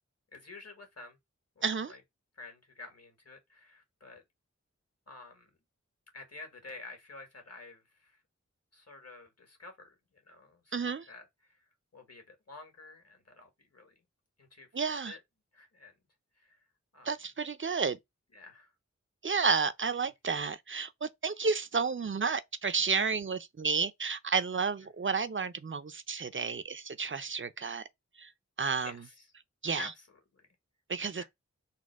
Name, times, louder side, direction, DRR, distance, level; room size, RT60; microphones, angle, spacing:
voice 1, 0.3-1.2 1.6-2.0 2.4-4.2 5.1-5.5 6.1-8.2 8.7-11.7 11.9-13.9 14.4-15.2 15.5-15.9 16.4-16.6 16.9-17.1 18.3-18.7 20.2-20.3 25.0-25.1 28.8-29.3 29.7-30.5 31.2-31.3, left 3 dB, 60° left, 1.9 m, -50 dB
voice 2, 1.6-1.9 10.7-11.1 14.7-15.1 17.1-18.0 19.2-27.8 28.2-28.3 28.6-28.9 29.6-29.9 30.9-31.2, right 5 dB, 45° right, 0.6 m, -31 dB
4.2 x 2.3 x 4.6 m
wide cardioid pair, 45°, 29 cm